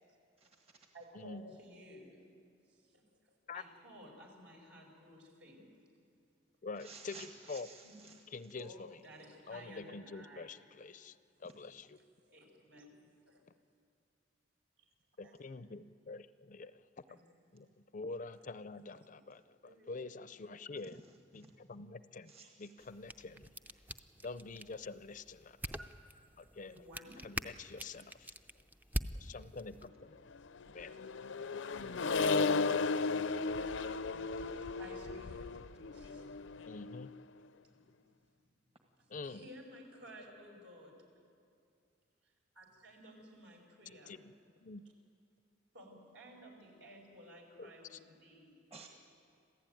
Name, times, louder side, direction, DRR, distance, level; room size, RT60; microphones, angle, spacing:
voice 1, 0.4-0.9 6.8-8.2 11.4-11.5 21.0-21.5 22.3-22.9 48.7-48.9, right 4 dB, 30° right, 2 dB, 1.6 m, -55 dB
voice 2, 0.9-2.2 2.7-5.7 7.8-8.0 8.6-10.6 12.3-13.4 14.8-14.9 15.2-15.4 17.1-17.2 18.7-18.8 19.1-19.2 19.6-20.1 25.8-25.9 26.7-27.2 34.4-35.5 35.9-36.5 37.6-38.4 39.2-41.0 42.2-44.2 45.7-48.6, equal, 70° right, 0 dB, 5.2 m, -55 dB
voice 3, 6.6-7.7 8.3-8.9 9.5-12.0 15.2-16.8 17.5-21.0 21.3-22.3 22.6-23.5 24.2-25.8 26.4-26.8 27.2-28.3 29.1-30.2 30.7-30.9 36.7-37.1 39.1-39.5 43.9-44.3 44.6-44.8 47.6-48.0, left 3 dB, 40° left, 14 dB, 0.5 m, -46 dB
sound 1, 22.8-29.9, equal, 10° right, 0.5 m, -45 dB
Accelerating revving vroom, 30.6-37.2, left 4 dB, 85° left, 0.6 m, -35 dB
27.0 x 15.5 x 9.2 m, 2.4 s
head